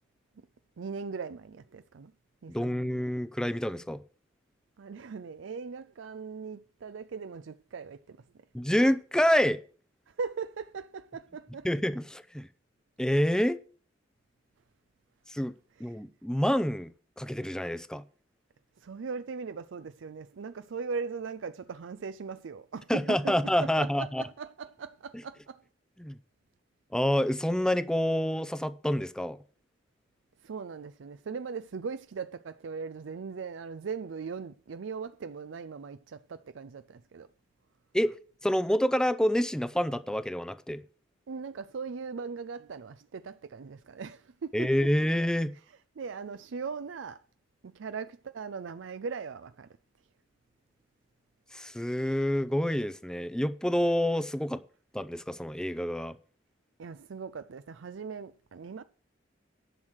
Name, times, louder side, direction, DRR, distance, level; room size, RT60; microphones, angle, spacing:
voice 1, 0.8-2.1 2.4-3.0 4.8-8.2 10.1-11.7 18.8-23.3 23.6-25.6 30.4-37.3 41.3-44.7 46.0-47.2 47.6-49.7 56.8-58.8, right 5 dB, 80° right, 0.5 m, -39 dB
voice 2, 2.5-4.0 8.5-9.6 11.6-12.5 13.0-13.6 15.3-15.5 15.8-18.0 22.9-24.2 26.0-26.2 26.9-29.4 37.9-40.8 44.5-45.5 51.5-54.6 54.9-56.2, equal, 5° left, 0.5 m, -28 dB
11.0 x 6.4 x 6.3 m
head